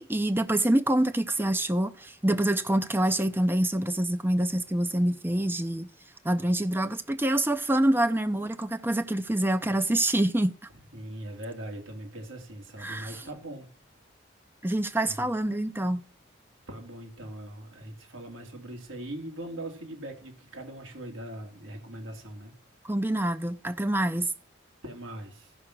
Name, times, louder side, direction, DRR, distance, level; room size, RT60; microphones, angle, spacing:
voice 1, 0.0-5.9 6.2-10.6 12.8-13.2 14.6-16.0 22.8-24.3, right 1 dB, 10° right, 0.6 m, -26 dB
voice 2, 10.9-13.7 15.0-15.3 16.7-22.5 24.8-25.5, right 1 dB, 85° right, 3.2 m, -41 dB
14.0 x 5.7 x 6.1 m
head